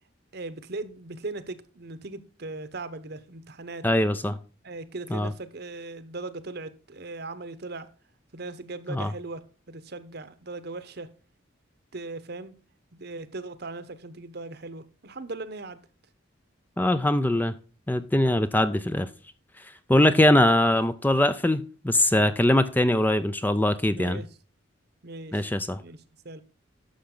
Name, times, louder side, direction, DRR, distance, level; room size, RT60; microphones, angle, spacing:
voice 1, 0.3-3.9 4.6-7.9 8.3-9.4 9.7-11.1 11.9-12.5 12.9-15.8 20.2-20.4 23.9-24.3 25.0-25.5 25.8-26.0 26.2-26.4, right 3 dB, 55° right, 1.0 m, -38 dB
voice 2, 3.8-4.4 5.1-5.3 8.9-9.1 16.8-17.5 17.9-19.1 19.9-24.2 25.3-25.8, left 1 dB, 10° left, 0.5 m, -22 dB
11.5 x 7.0 x 3.8 m
head